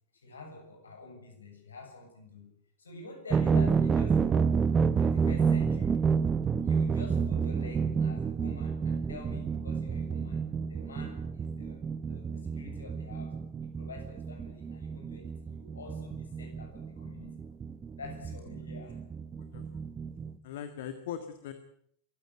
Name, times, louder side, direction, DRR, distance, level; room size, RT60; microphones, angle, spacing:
voice 1, 0.2-2.5 2.8-4.7 5.0-6.1 6.6-17.3 17.9-19.0, left 2 dB, 70° left, 4 dB, 7.2 m, -47 dB
sound 1, 3.3-20.3, right 6 dB, 20° right, 1.0 m, -29 dB
voice 2, 19.3-19.8 20.4-21.5, left 8 dB, 55° left, 9 dB, 1.7 m, -40 dB
23.0 x 15.0 x 9.1 m, 0.69 s
figure-of-eight pair, 90°, 0 cm